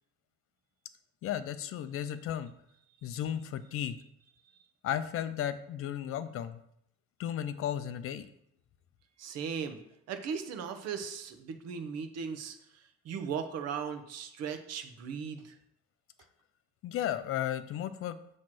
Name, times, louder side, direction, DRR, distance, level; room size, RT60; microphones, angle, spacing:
voice 1, 1.2-2.5 3.0-4.0 4.8-6.6 7.2-8.3 16.8-18.2, left 10 dB, 50° left, 12 dB, 0.4 m, -34 dB
voice 2, 9.2-9.8 10.1-15.6, right 6 dB, 60° right, 8 dB, 0.8 m, -38 dB
7.5 x 3.1 x 5.9 m, 0.73 s
cardioid pair, 180°, 29 cm